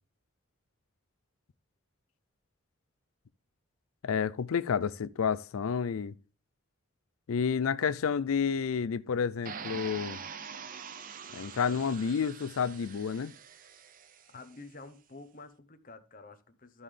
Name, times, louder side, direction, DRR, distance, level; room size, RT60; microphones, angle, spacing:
voice 1, 4.0-6.1 7.3-10.2 11.3-13.3, left 6 dB, 85° left, 0.4 m, -30 dB
sound 1, 9.4-14.4, right 6 dB, 40° right, 0.6 m, -44 dB
voice 2, 14.3-16.8, left 3 dB, 40° left, 0.9 m, -49 dB
13.0 x 5.6 x 3.3 m
head